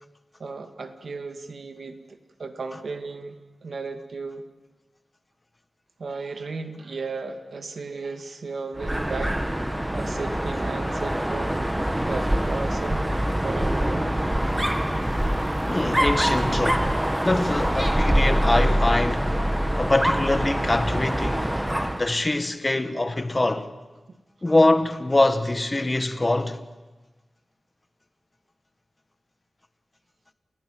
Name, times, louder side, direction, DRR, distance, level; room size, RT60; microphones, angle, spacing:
voice 1, 0.4-3.4 3.6-4.4 6.0-9.4 9.9-13.0 13.4-14.1, right 4 dB, 70° right, 2.1 m, -35 dB
Dog, 8.8-22.1, equal, 10° right, 1.3 m, -24 dB
voice 2, 15.7-19.4 19.8-21.5 22.0-23.7 24.4-26.6, left 2 dB, 25° left, 1.4 m, -23 dB
29.0 x 16.0 x 9.2 m
wide cardioid pair, 115°, 0 cm